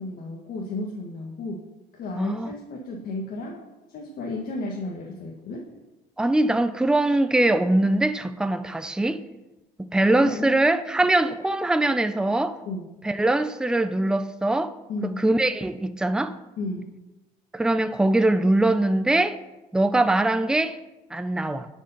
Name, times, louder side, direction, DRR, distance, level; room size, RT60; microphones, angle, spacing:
voice 1, 0.0-1.6 1.9-3.6 3.9-5.7 10.2-10.6 12.6-12.8 14.9-15.2 16.6-16.9, left 2 dB, 60° left, 1.6 m, -33 dB
voice 2, 2.2-2.5 6.2-9.2 9.8-12.6 13.0-14.7 15.0-16.4 17.5-19.4 19.7-20.8 21.1-21.7, right 2 dB, 5° right, 0.5 m, -22 dB
10.5 x 5.3 x 5.7 m
cardioid pair, 110°, 17 cm